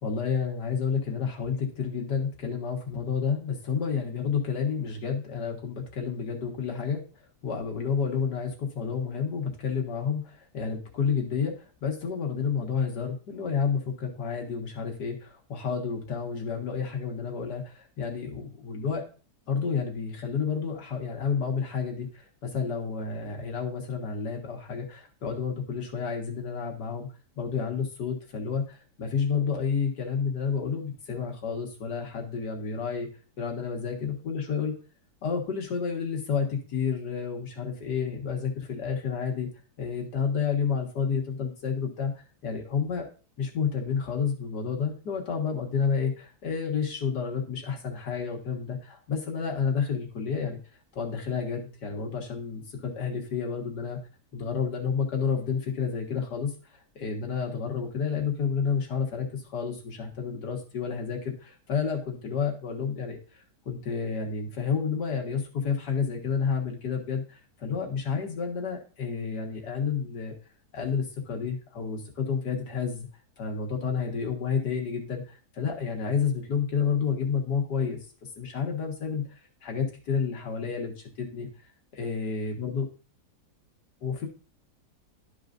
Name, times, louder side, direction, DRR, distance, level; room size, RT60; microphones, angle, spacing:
voice 1, 0.0-7.0 7.4-19.0 19.5-27.1 27.4-33.1 33.4-34.7 35.2-39.5 39.8-42.1 42.4-43.1 43.4-50.6 50.9-54.0 54.3-70.3 70.7-73.1 73.4-78.0 78.4-79.2 79.6-80.9 81.2-81.5 81.9-82.9 84.0-84.3, left 6 dB, 80° left, 2 dB, 2.1 m, -30 dB
12.0 x 4.9 x 2.6 m, 0.36 s
omnidirectional pair, 1.8 m